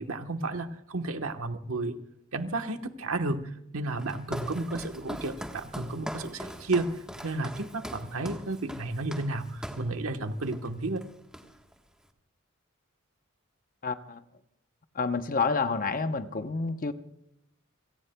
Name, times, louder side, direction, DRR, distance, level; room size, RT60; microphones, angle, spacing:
voice 1, 0.0-2.0 2.3-11.1, right 2 dB, 85° right, 1.2 m, -32 dB
Walk footsteps, 4.0-10.0 10.4-10.7 11.0-11.8, equal, 5° right, 1.3 m, -41 dB
voice 2, 13.8-14.2 15.0-16.9, left 4 dB, 40° left, 0.8 m, -29 dB
29.5 x 18.0 x 2.3 m
head